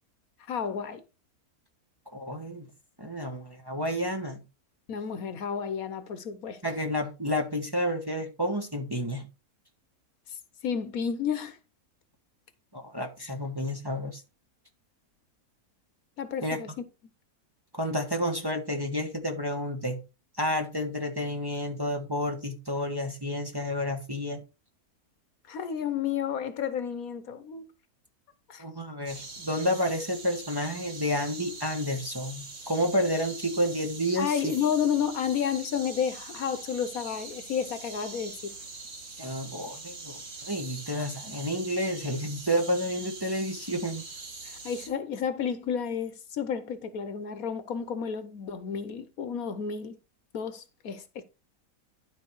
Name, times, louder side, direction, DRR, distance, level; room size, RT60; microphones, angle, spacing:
voice 1, 0.5-1.0 4.9-6.6 10.3-10.4 10.6-11.6 13.2-13.3 16.2-16.7 25.5-27.7 28.5-28.6 34.2-38.5 44.4-50.0 50.3-51.2, left 7 dB, 70° left, 1.4 m, -31 dB
voice 2, 2.1-2.7 3.0-4.4 6.6-9.3 12.7-14.2 16.4-16.6 17.7-20.0 20.4-24.4 28.6-34.5 39.2-44.1, equal, 15° right, 1.2 m, -30 dB
sound 1, 29.1-44.9, right 3 dB, 60° right, 2.3 m, -43 dB
11.5 x 4.1 x 4.6 m
omnidirectional pair, 1.6 m